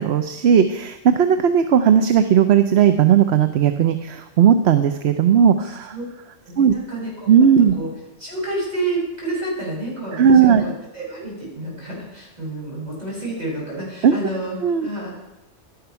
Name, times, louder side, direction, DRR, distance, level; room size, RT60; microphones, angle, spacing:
voice 1, 0.0-6.0 6.6-6.7 7.3-7.7 10.1-10.7 14.0-14.2 14.6-14.9, right 8 dB, 65° right, 9 dB, 0.9 m, -16 dB
voice 2, 5.6-6.0 6.4-7.3 7.7-7.9 8.2-14.5 14.8-15.1, right 2 dB, 35° right, -5 dB, 6.4 m, -29 dB
12.0 x 10.5 x 5.8 m, 0.99 s
omnidirectional pair, 1.2 m